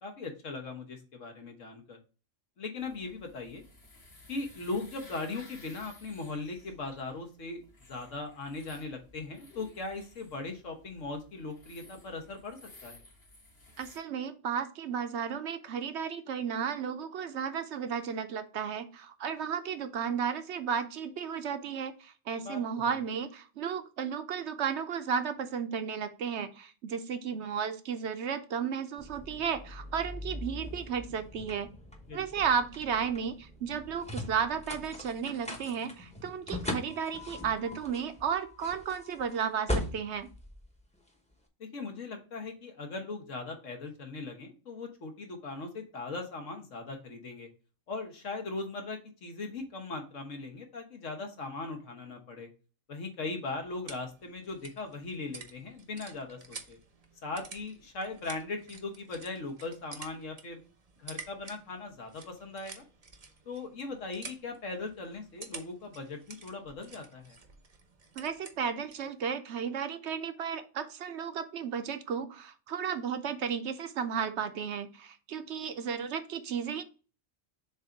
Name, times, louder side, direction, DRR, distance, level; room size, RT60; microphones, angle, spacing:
voice 1, 0.0-2.0 2.6-3.6 4.3-7.6 7.9-13.0 22.4-22.6 22.9-23.0 32.1-32.2 41.6-47.5 47.9-52.5 52.9-56.8 57.2-60.6 61.0-62.8 63.4-67.4, left 3 dB, 75° left, 4 dB, 1.6 m, -39 dB
sound 1, 2.8-14.0, left 2 dB, 55° left, 2.3 m, -56 dB
voice 2, 13.8-31.7 32.1-40.3 68.2-76.8, right 7 dB, 65° right, 9 dB, 0.9 m, -34 dB
sound 2, 29.0-41.3, left 1 dB, 5° left, 0.8 m, -40 dB
sound 3, 53.4-69.1, right 4 dB, 35° right, 0.7 m, -50 dB
7.0 x 2.7 x 5.1 m, 0.35 s
omnidirectional pair, 1.3 m